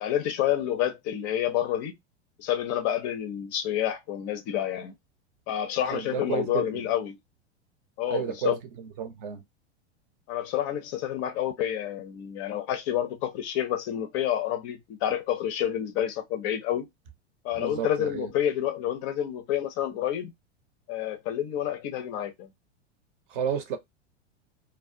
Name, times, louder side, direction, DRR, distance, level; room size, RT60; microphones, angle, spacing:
voice 1, 0.0-1.9 2.4-4.9 5.5-7.2 8.0-8.6 10.3-16.9 17.4-20.3 20.9-22.5, left 11 dB, 30° left, 0.4 m, -29 dB
voice 2, 5.9-6.8 8.1-9.4 17.5-18.3 23.3-23.8, right 7 dB, 50° right, 0.7 m, -32 dB
2.4 x 2.0 x 2.6 m
figure-of-eight pair, 90°, 34 cm